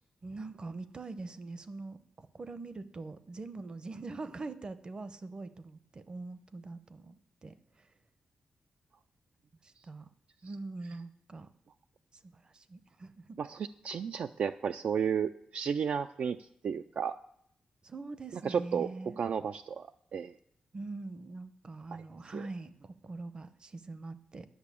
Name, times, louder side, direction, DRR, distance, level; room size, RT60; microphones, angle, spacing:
voice 1, 0.2-7.2 7.4-7.9 9.6-10.1 10.4-11.5 12.2-13.4 17.8-19.2 20.7-24.5, right 3 dB, 35° right, 13 dB, 0.7 m, -43 dB
voice 2, 13.4-17.2 18.4-20.3 21.9-22.0 22.3-22.4, right 7 dB, 60° right, 9 dB, 0.3 m, -33 dB
10.5 x 6.6 x 8.4 m, 0.72 s
wide cardioid pair, 115°, 3 cm